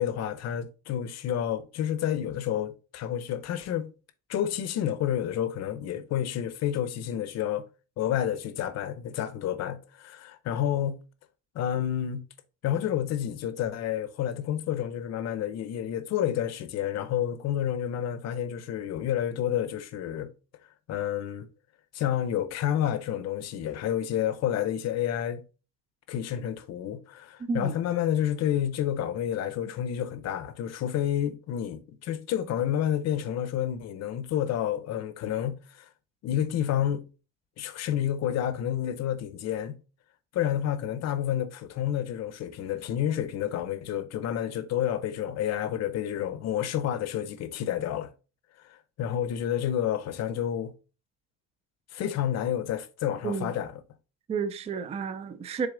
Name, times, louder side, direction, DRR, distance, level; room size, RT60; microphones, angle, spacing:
voice 1, 0.0-3.9 4.3-7.6 8.0-11.0 11.5-12.2 12.6-20.3 20.9-21.5 21.9-25.4 26.1-35.8 36.2-37.0 37.6-39.8 40.3-48.1 48.7-50.7 51.9-53.7, left 10 dB, 55° left, 0.7 m, -29 dB
voice 2, 27.4-27.7 53.2-53.5 54.3-55.7, right 5 dB, 20° right, 0.4 m, -31 dB
6.9 x 3.8 x 3.7 m
cardioid pair, 175°, 32 cm